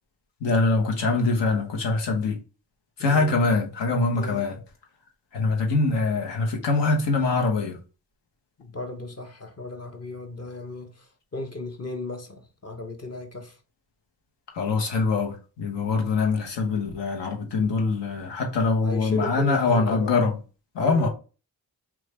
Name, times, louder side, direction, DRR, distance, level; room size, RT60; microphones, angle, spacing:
voice 1, 0.4-2.4 3.0-4.6 5.3-7.8 14.5-20.3 20.7-21.1, left 3 dB, 80° left, 1.0 m, -23 dB
voice 2, 3.0-3.4 4.1-4.5 8.6-13.6 18.8-20.1 20.8-21.1, left 2 dB, 35° left, 0.9 m, -35 dB
3.1 x 2.4 x 4.2 m
cardioid pair, 45°, 42 cm